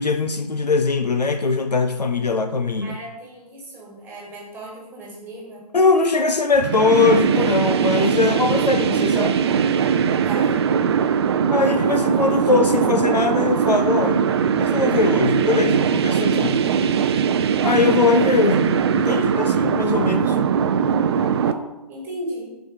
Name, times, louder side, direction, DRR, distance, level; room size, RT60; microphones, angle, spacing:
voice 1, 0.0-3.0 5.7-9.4 11.5-14.3 14.6-16.6 17.6-20.3, left 4 dB, 85° left, 7 dB, 1.0 m, -21 dB
voice 2, 2.8-5.6 10.2-10.6 21.4-22.6, right 1 dB, 10° right, -3 dB, 2.6 m, -35 dB
sound 1, 6.5-21.5, right 7 dB, 40° right, 0.5 m, -20 dB
6.4 x 5.2 x 6.5 m, 0.95 s
figure-of-eight pair, 140°, 20 cm